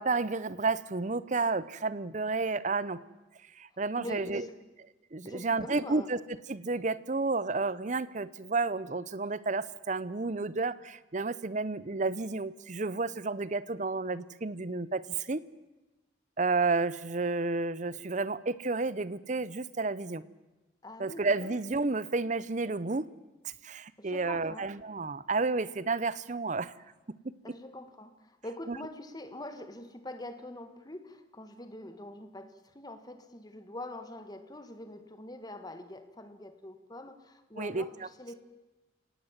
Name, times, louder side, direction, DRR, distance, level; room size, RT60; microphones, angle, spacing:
voice 1, 0.0-3.0 3.6-4.4 5.1-6.2 6.5-15.5 16.4-20.2 21.0-23.1 23.6-26.7 28.7-28.8 37.6-37.9, right 3 dB, 40° right, 17 dB, 0.7 m, -31 dB
voice 2, 4.0-4.6 5.2-6.1 20.8-21.5 24.0-24.7 27.4-38.4, left 1 dB, 20° left, 8 dB, 1.7 m, -44 dB
28.5 x 18.0 x 7.5 m, 1.1 s
head